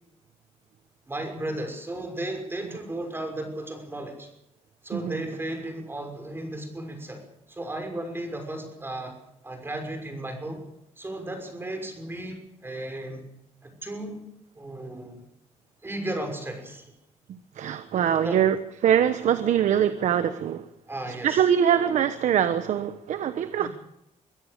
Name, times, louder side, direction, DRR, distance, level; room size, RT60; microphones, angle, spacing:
voice 1, 1.1-4.3 4.8-9.2 9.4-10.6 11.0-13.3 13.6-14.2 14.5-15.2 15.8-16.8 18.2-18.4 20.9-21.4 23.6-23.7, right 1 dB, 20° right, 4 dB, 5.9 m, -35 dB
voice 2, 4.9-5.2 17.3-18.6 18.8-20.7 21.2-23.7, right 9 dB, 80° right, 11 dB, 1.2 m, -23 dB
24.0 x 16.0 x 6.8 m, 0.82 s
cardioid pair, 125°, 12 cm